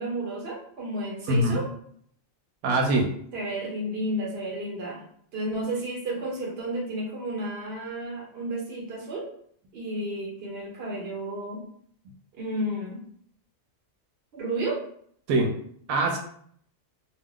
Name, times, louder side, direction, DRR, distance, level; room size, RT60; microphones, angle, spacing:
voice 1, 0.0-1.7 3.3-5.0 5.3-9.3 9.7-11.6 12.3-13.0 14.3-14.8, right 1 dB, 50° right, -2 dB, 1.0 m, -32 dB
voice 2, 1.3-1.6 2.6-3.1 15.3-15.5 15.9-16.2, right 2 dB, 90° right, 2 dB, 1.0 m, -22 dB
2.3 x 2.2 x 3.6 m, 0.63 s
omnidirectional pair, 1.4 m